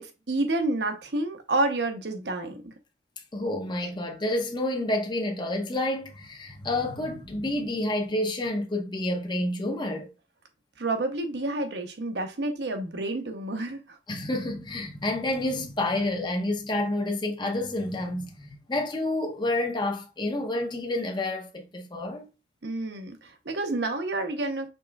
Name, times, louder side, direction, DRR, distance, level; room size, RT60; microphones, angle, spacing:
voice 1, 0.0-2.7 10.8-14.0 22.6-24.7, right 2 dB, 70° right, 0.9 m, -29 dB
voice 2, 3.3-10.1 14.1-22.3, left 1 dB, 25° left, 0.8 m, -29 dB
5.4 x 3.7 x 2.3 m
head